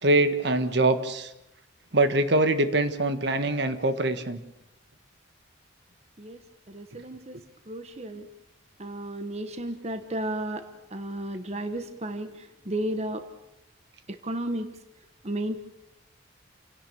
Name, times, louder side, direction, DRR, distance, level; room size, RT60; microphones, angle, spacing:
voice 1, 0.0-1.3 1.9-4.4, right 2 dB, 60° right, 10 dB, 1.6 m, -23 dB
voice 2, 6.7-7.4 7.7-8.3 8.8-10.7 10.9-13.2 14.1-14.7 15.2-15.6, right 1 dB, 35° right, 8 dB, 1.2 m, -33 dB
29.0 x 17.5 x 7.0 m, 0.89 s
head